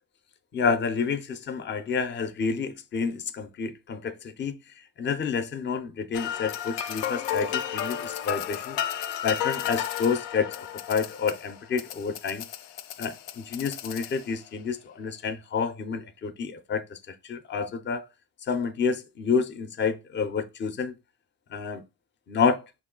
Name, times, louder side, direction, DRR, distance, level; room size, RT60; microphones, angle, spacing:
voice 1, 0.5-4.6 5.0-8.8 9.2-12.5 13.0-18.1 18.4-20.9 21.5-21.8 22.3-22.6, left 5 dB, 30° left, 0.5 m, -29 dB
sound 1, 6.1-14.5, left 10 dB, 85° left, 0.6 m, -33 dB
5.6 x 2.3 x 3.7 m
cardioid pair, 125°, 41 cm